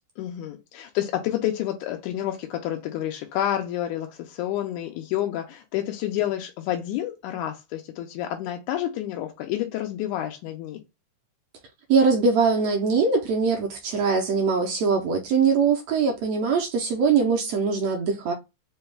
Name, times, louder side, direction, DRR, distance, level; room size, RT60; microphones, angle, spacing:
voice 1, 0.2-10.8, left 12 dB, 90° left, 2.1 m, -29 dB
voice 2, 11.9-18.3, right 5 dB, 75° right, 1.6 m, -22 dB
5.1 x 2.3 x 3.2 m
omnidirectional pair, 3.5 m